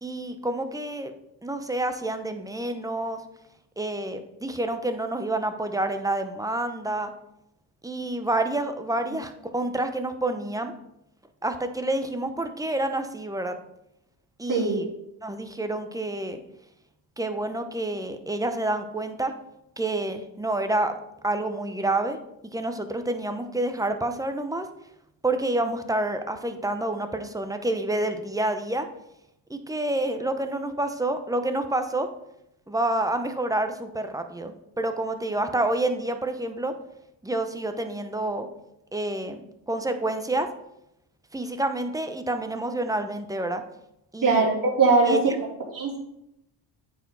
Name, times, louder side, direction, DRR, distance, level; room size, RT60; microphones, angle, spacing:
voice 1, 0.0-1.1 1.4-3.2 3.8-7.1 7.8-10.7 11.4-13.5 14.4-14.9 15.2-16.4 17.2-19.3 19.8-21.0 21.2-22.2 22.5-24.7 25.2-28.9 29.5-32.1 32.7-36.7 37.2-38.5 38.9-39.4 39.7-40.5 41.3-43.6 44.1-44.5 45.1-45.4, right 2 dB, 10° right, 7 dB, 0.7 m, -28 dB
voice 2, 14.5-14.8 44.2-45.2 45.7-46.0, right 4 dB, 50° right, -2 dB, 2.9 m, -21 dB
8.9 x 4.7 x 3.9 m, 0.83 s
cardioid pair, 90°, 43 cm